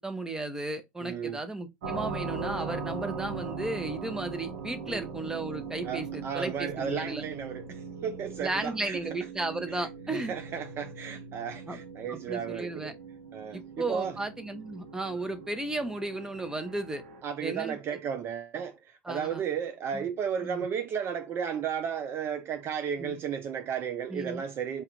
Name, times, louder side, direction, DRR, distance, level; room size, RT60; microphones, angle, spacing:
voice 1, 0.0-7.2 8.4-10.3 11.7-11.8 12.1-12.9 13.5-17.0 17.4-18.0 19.1-19.4 19.9-20.0 20.4-20.7 23.0-23.2 24.1-24.4, right 2 dB, 10° right, 0.8 m, -34 dB
voice 2, 1.0-1.4 4.9-5.0 5.8-9.0 9.7-13.0 13.3-14.2 17.2-24.8, right 7 dB, 40° right, 0.4 m, -34 dB
sound 1, 1.8-17.2, right 4 dB, 80° right, 0.9 m, -40 dB
4.5 x 2.4 x 3.0 m
hypercardioid pair, 85°, 6 cm